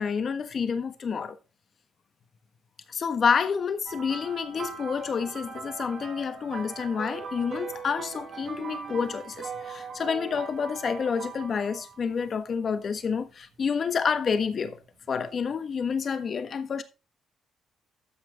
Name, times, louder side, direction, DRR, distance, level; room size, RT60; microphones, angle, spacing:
voice 1, 0.0-1.4 2.9-14.8 15.1-16.8, left 6 dB, 50° left, 1.3 m, -29 dB
sound 1, 3.9-12.1 13.0-13.2 15.1-15.2, right 5 dB, 55° right, 2.2 m, -40 dB
13.0 x 5.9 x 3.8 m
cardioid pair, 90°, 0 cm